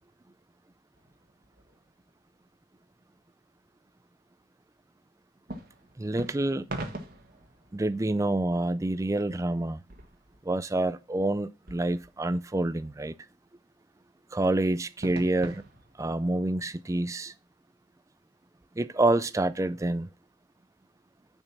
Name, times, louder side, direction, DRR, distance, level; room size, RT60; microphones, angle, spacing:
sound 1, 0.9-2.3 5.5-8.6 9.0-9.1 9.4-9.5 9.8-10.9 11.7-12.7 15.0-16.9, right 1 dB, 50° right, 1.5 m, -43 dB
voice 1, 6.0-6.7 7.7-9.8 10.4-13.1 14.3-15.6 16.0-17.3 18.8-20.1, right 2 dB, 15° right, 0.4 m, -27 dB
7.0 x 5.5 x 5.9 m
head